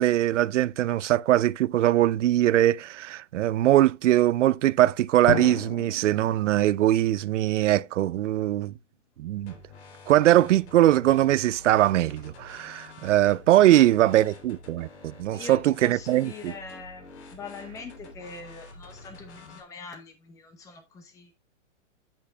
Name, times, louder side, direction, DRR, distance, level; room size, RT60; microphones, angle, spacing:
voice 1, 0.0-8.7 9.2-9.5 10.1-14.9 15.2-16.5, right 13 dB, 75° right, 0.5 m, -21 dB
Drum, 5.3-8.0, left 10 dB, 80° left, 0.7 m, -35 dB
sound 1, 9.4-19.6, left 3 dB, 65° left, 3.3 m, -48 dB
voice 2, 15.3-21.3, left 4 dB, 10° left, 0.7 m, -43 dB
10.0 x 9.0 x 2.2 m
hypercardioid pair, 160°, 37 cm